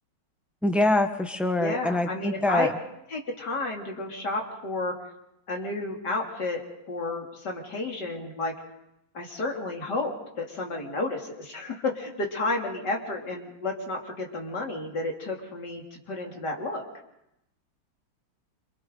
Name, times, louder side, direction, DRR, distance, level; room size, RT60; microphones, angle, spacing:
voice 1, 0.6-2.7, left 2 dB, ahead, 6 dB, 1.0 m, -24 dB
voice 2, 1.6-2.7 3.1-4.9 5.5-6.6 6.9-8.5 9.1-16.8, left 2 dB, 65° left, 0 dB, 3.6 m, -31 dB
27.0 x 27.0 x 3.9 m, 0.85 s
omnidirectional pair, 2.0 m